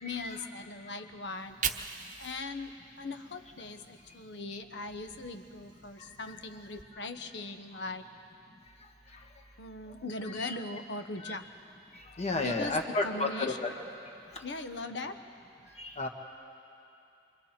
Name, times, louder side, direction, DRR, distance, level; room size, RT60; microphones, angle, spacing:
voice 1, 0.0-8.0 9.6-11.4 12.4-13.7 14.4-15.2, left 3 dB, 70° left, 8 dB, 1.0 m, -40 dB
Fire, 1.2-4.4 4.8-6.8, right 7 dB, 45° right, 0.8 m, -42 dB
voice 2, 12.2-13.7 15.8-16.1, left 2 dB, 35° left, 2 dB, 1.7 m, -31 dB
26.5 x 25.0 x 4.4 m, 2.7 s
head